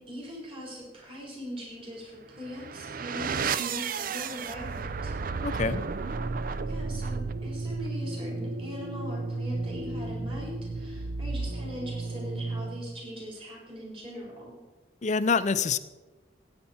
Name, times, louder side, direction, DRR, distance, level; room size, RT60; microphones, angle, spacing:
voice 1, 0.0-5.1 6.7-14.6, equal, 30° right, -3 dB, 3.9 m, -41 dB
sound 1, 2.3-13.0, right 4 dB, 50° right, 0.5 m, -33 dB
voice 2, 5.4-5.9 15.0-15.8, left 5 dB, 40° left, 13 dB, 0.5 m, -26 dB
18.5 x 8.9 x 4.3 m, 1.1 s
head